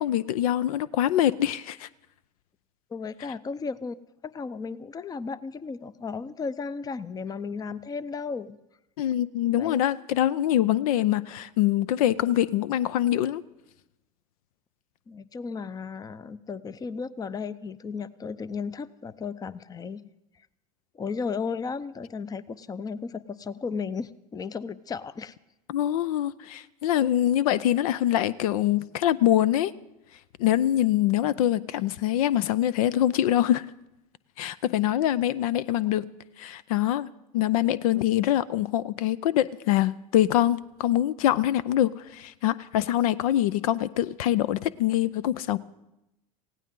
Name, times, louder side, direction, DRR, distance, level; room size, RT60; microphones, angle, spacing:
voice 1, 0.0-1.9 9.0-13.4 25.7-29.7 30.4-33.7 34.4-36.0 36.4-45.6, left 12 dB, 75° left, 18 dB, 0.5 m, -24 dB
voice 2, 2.9-3.9 4.2-8.6 9.6-9.8 15.1-20.0 20.9-25.3 37.9-38.0, left 5 dB, 20° left, 18 dB, 0.6 m, -34 dB
19.0 x 16.0 x 3.8 m, 0.91 s
hypercardioid pair, 85°, 19 cm